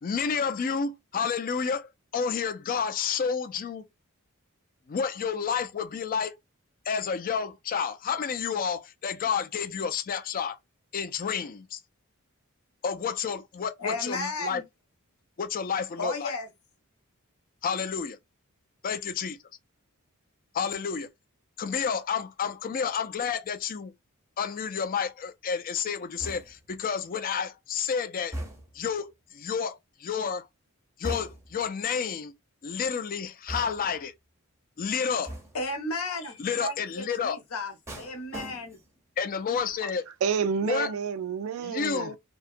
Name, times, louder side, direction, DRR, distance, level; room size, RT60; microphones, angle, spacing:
voice 1, 0.0-3.8 4.9-6.3 6.9-10.6 10.9-11.8 12.8-14.6 15.4-16.4 17.6-18.2 18.8-19.3 20.5-21.1 21.6-23.9 24.4-28.3 28.7-30.5 31.0-32.3 32.6-34.1 34.8-35.3 36.4-37.4 39.2-40.0 40.6-40.9 41.6-42.2, left 6 dB, 40° left, 0.4 m, -30 dB
voice 2, 13.8-14.6 16.0-16.5 35.5-38.8, left 2 dB, 75° left, 0.8 m, -34 dB
sound 1, 26.2-26.8 28.3-28.9 31.0-31.7 33.5-34.0 35.3-35.7 37.9-39.0 39.4-39.7, right 1 dB, 15° right, 0.6 m, -39 dB
voice 3, 40.2-42.2, right 6 dB, 70° right, 0.3 m, -29 dB
2.7 x 2.2 x 2.5 m
head